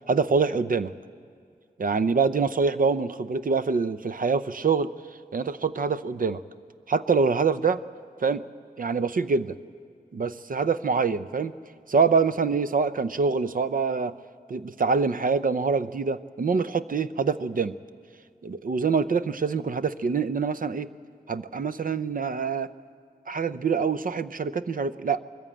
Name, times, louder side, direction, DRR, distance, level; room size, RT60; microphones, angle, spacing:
voice 1, 0.1-0.9 1.8-4.9 5.3-6.4 6.9-7.8 8.2-8.5 8.8-9.6 10.1-11.5 11.9-14.2 14.5-17.7 18.4-20.9 21.3-22.7 23.3-25.2, right 5 dB, 60° right, 14 dB, 0.6 m, -25 dB
21.5 x 14.5 x 8.7 m, 2.3 s
wide cardioid pair, 70°, 16 cm